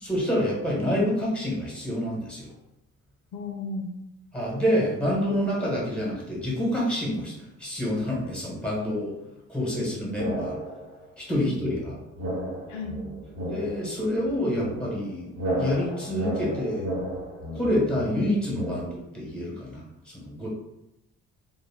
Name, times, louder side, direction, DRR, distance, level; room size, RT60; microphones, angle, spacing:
voice 1, 0.0-2.5 4.3-7.3 7.6-9.1 9.5-10.6 11.2-11.9 13.5-15.3 15.6-16.9 17.5-20.5, equal, 5° left, -4 dB, 1.1 m, -27 dB
voice 2, 3.3-3.9 11.3-11.6 12.7-13.0, left 3 dB, 75° left, 1 dB, 0.5 m, -34 dB
sound 1, 10.2-11.0 11.6-18.8, right 1 dB, 60° right, 1.2 m, -33 dB
2.3 x 2.1 x 3.3 m, 0.87 s
cardioid pair, 90°, 30 cm